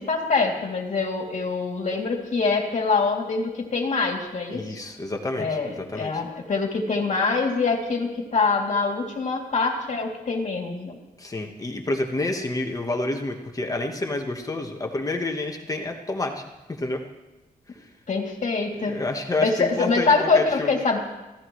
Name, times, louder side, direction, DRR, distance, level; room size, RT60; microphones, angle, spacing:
voice 1, 0.0-4.8 5.4-11.0 18.1-19.0 19.4-21.0, left 4 dB, 50° left, 0 dB, 2.8 m, -24 dB
voice 2, 4.5-6.2 11.2-16.4 16.7-17.0 17.8-17.9 18.8-20.7, left 2 dB, 20° left, 2 dB, 1.3 m, -29 dB
25.5 x 16.0 x 3.2 m, 1.1 s
wide cardioid pair, 155°, 16 cm